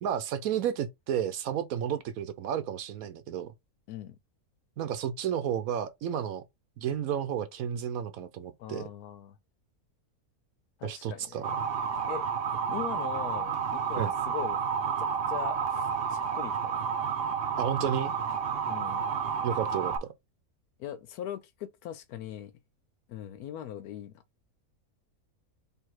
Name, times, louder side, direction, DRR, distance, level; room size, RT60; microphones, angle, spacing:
voice 1, 0.0-3.5 4.8-6.4 6.8-8.9 10.8-11.5 14.0-14.1 17.6-18.1 19.4-20.1, right 9 dB, 75° right, 1.1 m, -32 dB
voice 2, 3.9-4.2 8.6-9.4 10.8-11.5 12.1-12.3 12.7-16.9 18.7-19.0 20.8-22.5 23.1-24.1, left 10 dB, 90° left, 1.1 m, -40 dB
Motor vehicle (road) / Siren, 11.4-20.0, right 6 dB, 55° right, 0.7 m, -30 dB
3.5 x 2.7 x 4.6 m
omnidirectional pair, 1.6 m